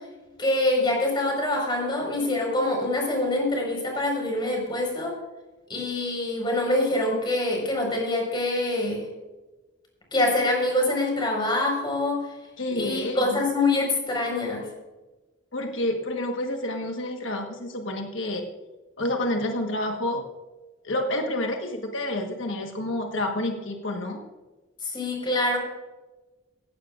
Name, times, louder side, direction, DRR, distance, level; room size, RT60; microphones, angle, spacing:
voice 1, 0.4-5.1 5.7-9.1 10.1-12.3 12.7-14.7 24.8-25.6, left 2 dB, 25° left, 0 dB, 4.8 m, -25 dB
voice 2, 12.6-13.4 15.5-18.5 19.0-20.2 20.8-24.2, left 1 dB, 85° left, 3 dB, 1.4 m, -29 dB
17.5 x 15.5 x 2.5 m, 1.2 s
head